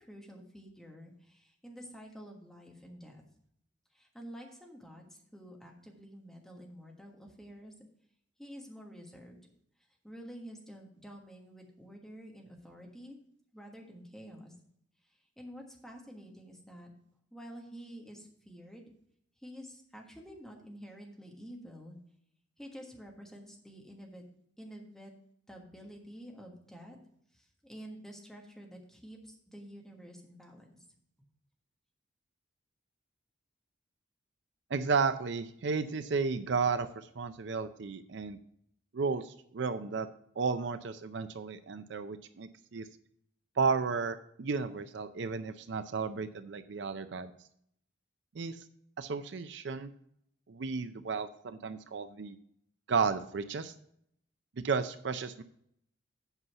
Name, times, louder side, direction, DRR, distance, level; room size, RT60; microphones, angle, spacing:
voice 1, 0.0-3.2 3.9-7.7 8.4-9.4 10.0-13.2 13.5-14.5 15.0-16.9 17.3-18.9 19.4-22.0 22.6-24.2 24.6-25.1 25.5-27.0 27.3-30.8, equal, ahead, 0 dB, 1.4 m, -49 dB
voice 2, 34.7-38.4 38.9-40.1 40.4-42.9 43.6-47.3 48.3-48.6 49.0-49.9 50.5-52.4 52.9-53.7 54.6-55.4, right 5 dB, 60° right, 11 dB, 0.5 m, -33 dB
8.1 x 5.6 x 5.7 m, 0.70 s
head